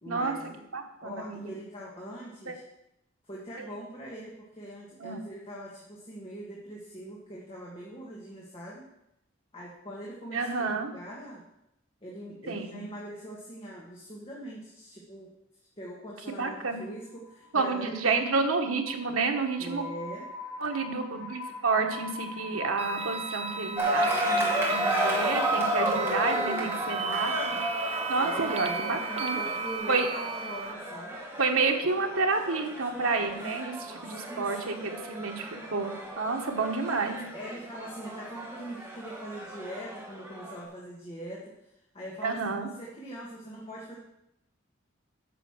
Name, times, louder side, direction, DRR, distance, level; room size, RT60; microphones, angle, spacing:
voice 1, 0.0-0.6 1.0-2.6 3.2-8.9 9.5-11.4 12.0-15.3 15.8-18.2 19.6-20.3 28.2-31.2 34.1-34.9 37.3-43.9, right 1 dB, 25° left, -5 dB, 1.7 m, -42 dB
voice 2, 0.7-1.4 2.5-2.6 3.6-3.7 5.0-5.3 10.3-10.9 12.5-12.9 16.3-16.8 17.5-19.8 20.6-29.4 29.9-30.1 31.4-37.2 42.2-42.7, right 4 dB, 85° right, 3 dB, 1.4 m, -30 dB
sound 1, 16.7-29.8, left 3 dB, 55° left, 2.9 m, -42 dB
sound 2, 22.8-30.7, right 5 dB, 30° right, 0.5 m, -34 dB
sound 3, 23.8-40.6, equal, 10° right, 1.9 m, -33 dB
9.2 x 5.8 x 7.3 m, 0.85 s
head